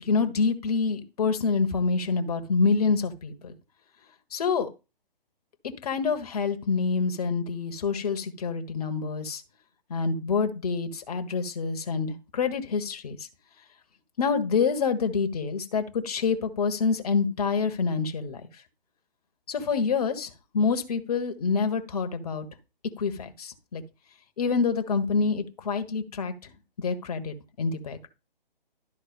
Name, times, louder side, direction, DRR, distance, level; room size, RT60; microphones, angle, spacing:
voice 1, 0.0-3.5 4.3-4.7 5.8-9.4 9.9-13.3 14.2-18.4 19.5-20.3 20.5-22.5 23.0-23.8 24.4-26.5 26.8-28.1, left 5 dB, 40° left, 8 dB, 1.4 m, -27 dB
12.0 x 4.0 x 5.3 m, 0.29 s
figure-of-eight pair, 140°, 29 cm